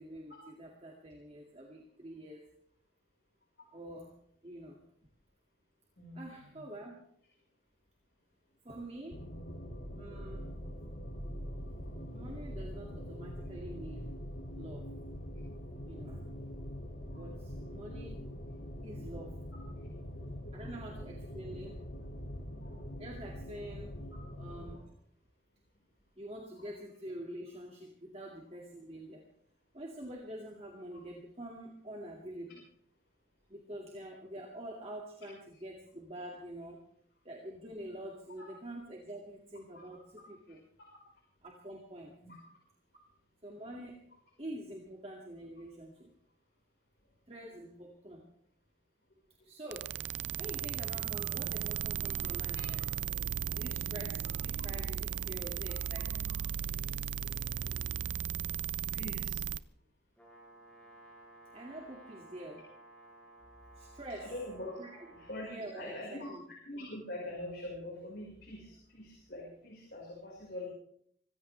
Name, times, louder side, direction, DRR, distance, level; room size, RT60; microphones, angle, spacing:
voice 1, 0.0-2.4 3.7-4.1 4.4-4.8 6.2-7.0 8.6-9.3 9.9-10.5 12.1-14.1 14.5-14.9 15.9-16.3 17.2-18.2 18.8-19.4 20.5-21.8 23.0-24.0 24.4-24.9 26.2-29.3 29.7-32.6 33.5-36.8 37.2-40.6 41.4-42.2 43.4-44.0 44.4-46.1 47.3-48.3 49.4-49.9 50.4-52.8 53.5-56.3 61.5-62.6 63.8-64.3 64.8-65.1 65.5-66.4, right 1 dB, 35° right, -1 dB, 2.3 m, -46 dB
voice 2, 6.0-6.6 11.8-11.9 16.9-17.6 18.2-18.3 19.8-20.7 22.5-22.9 24.6-24.8 26.6-26.7 39.7-39.8 40.5-40.6 42.2-42.4 51.1-51.2 52.5-52.6 53.6-53.7 57.6-57.7 58.8-59.4 64.2-64.8 65.1-66.3 66.6-70.7, left 1 dB, 60° left, -3 dB, 5.1 m, -45 dB
sound 1, 9.1-24.8, equal, 80° left, 2.7 m, -43 dB
sound 2, 49.7-59.6, right 8 dB, 80° right, 0.5 m, -36 dB
Brass instrument, 60.2-65.4, right 2 dB, 5° left, 5.5 m, -56 dB
25.0 x 15.5 x 3.4 m, 0.66 s
head